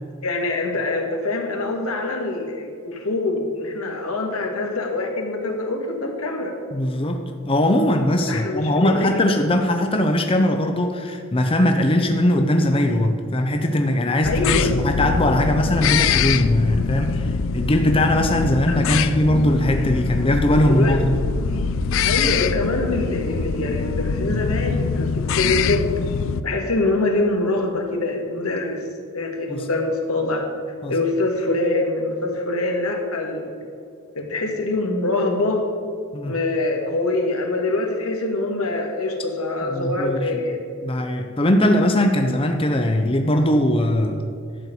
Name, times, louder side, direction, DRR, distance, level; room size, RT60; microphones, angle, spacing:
voice 1, 0.2-6.5 8.3-9.4 14.2-14.7 18.9-19.0 20.7-21.0 22.0-25.9 26.4-28.8 29.1-30.5 30.9-33.6 34.2-35.6 36.2-40.6, left 2 dB, 85° left, 2 dB, 1.7 m, -24 dB
voice 2, 6.7-7.2 7.4-21.1 29.5-29.7 30.8-30.9 36.1-36.4 39.7-40.5 40.8-44.2, left 1 dB, 25° left, 4 dB, 0.6 m, -20 dB
sound 1, 14.2-26.4, left 5 dB, 65° left, 0.4 m, -23 dB
12.0 x 4.5 x 8.4 m, 2.3 s
head